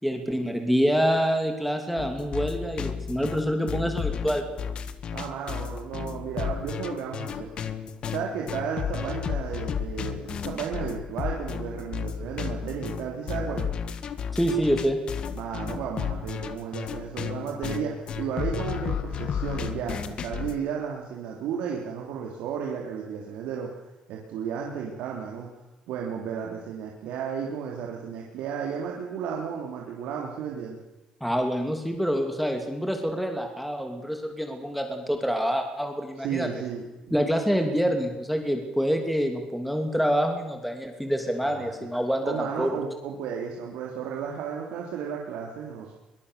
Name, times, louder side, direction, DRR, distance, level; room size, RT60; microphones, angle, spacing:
voice 1, 0.0-4.5 14.3-15.0 31.2-36.5 37.1-42.7, equal, ahead, 4 dB, 2.7 m, -26 dB
sound 1, 2.0-20.6, left 7 dB, 45° left, 1.7 m, -33 dB
voice 2, 5.1-7.7 8.1-13.7 15.3-23.7 24.1-25.5 25.9-30.8 36.2-37.1 41.4-41.7 42.2-45.9, right 7 dB, 90° right, -1 dB, 3.6 m, -33 dB
23.5 x 21.5 x 6.9 m, 1.0 s
cardioid pair, 140°, 2 cm